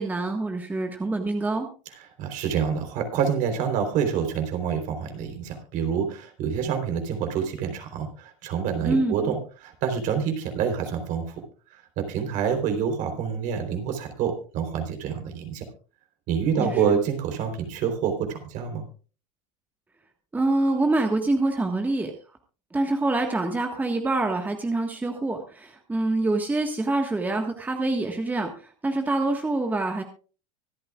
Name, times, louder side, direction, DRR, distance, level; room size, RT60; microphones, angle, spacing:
voice 1, 0.0-1.7 8.8-9.3 16.6-16.9 20.3-22.1 22.7-30.0, right 2 dB, 10° right, 4 dB, 1.5 m, -26 dB
voice 2, 2.2-11.4 11.7-15.6 16.3-18.9, right 7 dB, 55° right, 5 dB, 3.7 m, -27 dB
24.5 x 8.6 x 2.4 m, 0.37 s
supercardioid pair, 120°, 16 cm